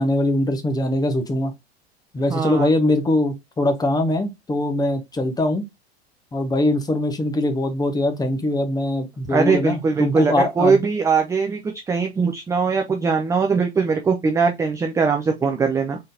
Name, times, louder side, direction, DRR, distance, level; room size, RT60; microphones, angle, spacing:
voice 1, 0.0-1.5 2.1-5.6 6.3-10.8, left 1 dB, 10° left, 1.1 m, -22 dB
voice 2, 2.3-2.7 9.3-16.0, right 5 dB, 10° right, 0.5 m, -21 dB
4.0 x 3.8 x 2.7 m
figure-of-eight pair, 85°, 32 cm